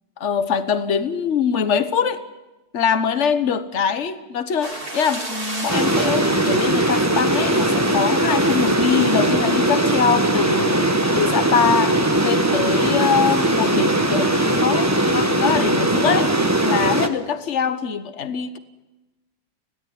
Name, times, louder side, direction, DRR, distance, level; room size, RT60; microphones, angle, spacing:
voice 1, 0.2-2.2 2.7-10.8 11.1-16.3 16.6-18.6, left 7 dB, 45° left, 12 dB, 1.3 m, -23 dB
sound 1, 4.6-14.6, right 1 dB, 30° right, 3.1 m, -35 dB
sound 2, 5.7-17.1, right 1 dB, 10° right, 1.0 m, -19 dB
21.0 x 17.0 x 9.6 m, 1.0 s
omnidirectional pair, 2.1 m